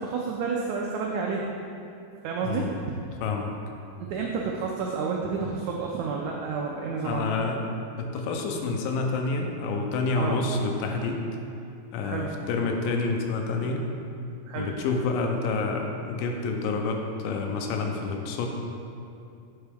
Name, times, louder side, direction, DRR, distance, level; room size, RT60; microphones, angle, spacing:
voice 1, 0.0-1.4 2.2-2.7 4.0-7.3 10.2-10.4 12.0-12.3 14.5-14.7, right 5 dB, 90° right, -1 dB, 1.6 m, -30 dB
voice 2, 2.4-2.7 3.2-3.5 7.0-7.6 8.0-11.3 11.9-13.8 14.6-18.5, left 3 dB, 85° left, 3 dB, 2.3 m, -28 dB
8.1 x 4.5 x 3.4 m, 2.6 s
omnidirectional pair, 3.9 m